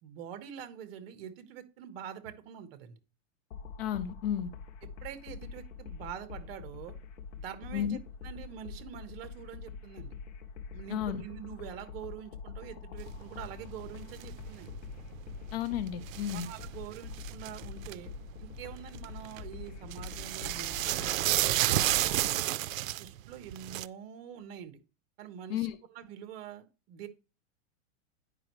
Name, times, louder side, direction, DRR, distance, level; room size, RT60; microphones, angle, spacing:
voice 1, 0.0-2.9 5.0-6.9 7.4-10.1 10.7-14.8 16.3-18.1 18.4-21.5 22.1-24.8 25.2-27.1, right 9 dB, 50° right, 10 dB, 1.3 m, -45 dB
sound 1, 3.5-22.3, left 5 dB, 65° left, 1.1 m, -45 dB
voice 2, 3.8-4.5 7.7-8.0 10.9-11.2 15.5-16.5 25.5-25.8, left 10 dB, 50° left, 14 dB, 0.8 m, -32 dB
sound 2, 13.1-18.0 18.6-19.5 19.8-23.9, right 15 dB, 90° right, 0.5 m, -31 dB
10.0 x 5.4 x 3.1 m, 0.31 s
supercardioid pair, 160°, 39 cm